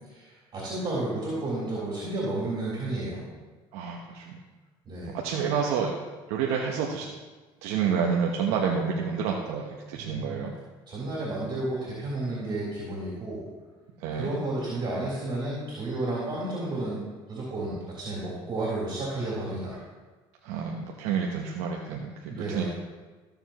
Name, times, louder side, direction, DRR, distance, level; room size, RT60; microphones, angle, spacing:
voice 1, 0.1-3.2 4.8-5.2 10.0-10.4 10.9-13.4 14.1-19.8 22.3-22.7, right 2 dB, 40° right, -7 dB, 3.6 m, -32 dB
voice 2, 3.7-4.4 5.1-5.9 6.3-7.1 7.6-10.5 14.0-14.4 20.4-22.7, right 6 dB, 80° right, 0 dB, 1.0 m, -29 dB
15.0 x 7.1 x 3.0 m, 1.3 s
supercardioid pair, 90°, 12 cm